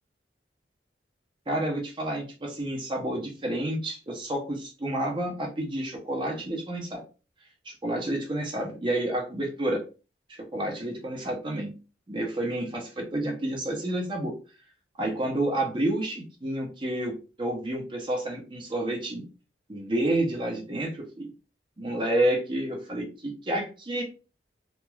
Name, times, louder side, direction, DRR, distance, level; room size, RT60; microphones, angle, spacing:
voice 1, 1.5-7.0 7.6-9.8 10.3-11.7 12.1-14.3 15.0-19.2 19.7-21.3 21.8-24.0, right 1 dB, 30° right, 0 dB, 0.6 m, -29 dB
3.1 x 2.3 x 2.2 m, 0.33 s
head